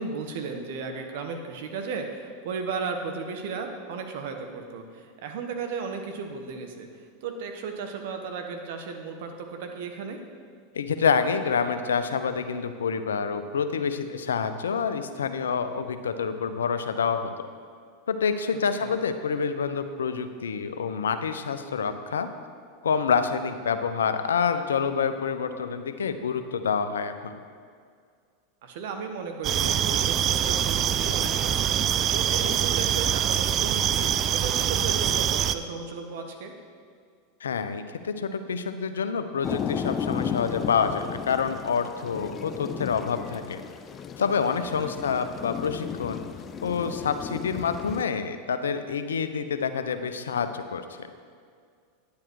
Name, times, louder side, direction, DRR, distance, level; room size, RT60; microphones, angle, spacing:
voice 1, 0.0-6.9 7.2-10.2 18.8-19.0 28.6-36.5 44.8-45.0, right 5 dB, 65° right, 5 dB, 1.4 m, -35 dB
voice 2, 10.7-17.3 18.1-22.3 22.8-27.4 37.4-43.6 44.2-46.2 46.6-51.1, left 6 dB, 85° left, 9 dB, 0.7 m, -27 dB
sound 1, 29.4-35.5, right 10 dB, 40° right, 0.5 m, -24 dB
sound 2, 39.4-48.0, left 7 dB, 30° left, 0.5 m, -34 dB
10.5 x 8.7 x 4.7 m, 2.1 s
hypercardioid pair, 100°, 0 cm